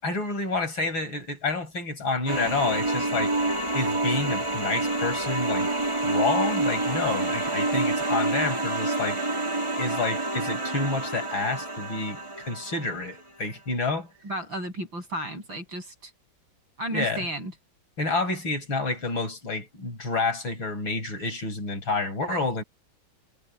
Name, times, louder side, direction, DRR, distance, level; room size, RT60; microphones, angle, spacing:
voice 1, 0.0-3.3 3.7-5.7 6.0-9.2 9.8-14.1 16.9-17.3 18.0-22.6, left 3 dB, 90° left, 6.2 m, -29 dB
sound 1, 2.3-13.0, right 2 dB, 15° right, 2.9 m, -27 dB
voice 2, 14.2-16.1 16.8-17.5, right 1 dB, 75° right, 8.7 m, -33 dB
omnidirectional pair, 2.1 m